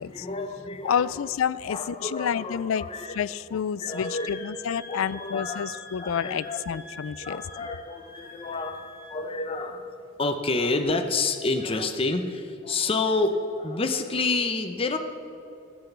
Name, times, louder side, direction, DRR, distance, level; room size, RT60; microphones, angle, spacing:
voice 1, 0.0-1.2 1.7-3.2 3.5-4.4 4.9-6.8 7.2-9.9 10.2-15.0, left 3 dB, 25° left, 6 dB, 0.7 m, -29 dB
voice 2, 0.8-2.9 3.1-7.7, left 8 dB, 65° left, 18 dB, 0.4 m, -29 dB
Wind instrument woodwind instrument, 3.9-9.2, left 2 dB, 45° left, 1.4 m, -45 dB
14.0 x 8.0 x 8.1 m, 2.8 s
head